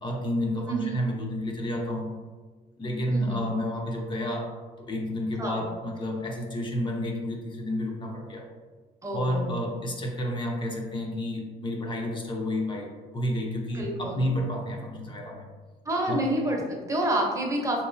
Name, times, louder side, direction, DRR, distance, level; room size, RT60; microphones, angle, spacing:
voice 1, 0.0-2.1 2.8-4.5 4.8-8.5 9.1-15.5 16.1-16.2, left 1 dB, 30° left, 1 dB, 0.5 m, -30 dB
voice 2, 9.0-9.5 13.7-14.2 15.8-17.8, right 1 dB, 20° right, -1 dB, 0.7 m, -28 dB
3.2 x 3.0 x 2.6 m, 1.4 s
cardioid pair, 110°, 17 cm